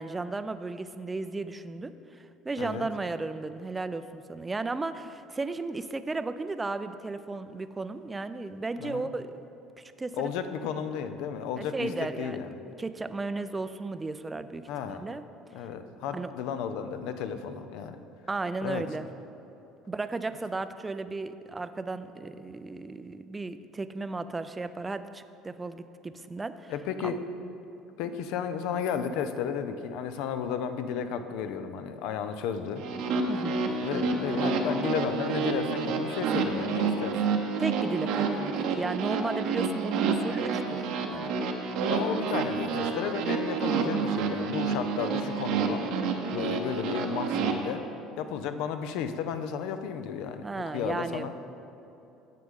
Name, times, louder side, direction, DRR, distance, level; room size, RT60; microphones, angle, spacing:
voice 1, 0.0-9.3 9.8-10.3 11.6-12.4 12.8-15.2 16.1-16.3 18.3-19.1 19.9-26.7 27.0-27.1 33.3-33.6 37.6-40.8 41.1-41.3 50.4-51.3, right 3 dB, 20° right, 11 dB, 0.4 m, -34 dB
voice 2, 2.6-2.9 8.8-9.1 10.2-12.5 14.7-15.0 15.5-18.0 18.6-18.8 26.7-27.2 28.0-32.8 33.8-37.2 41.9-45.8 46.3-47.8 48.2-51.3, left 7 dB, 75° left, 9 dB, 0.5 m, -33 dB
sound 1, 32.8-47.5, right 5 dB, 70° right, 0.8 m, -29 dB
9.4 x 6.7 x 3.6 m, 2.9 s
supercardioid pair, 85°, 0 cm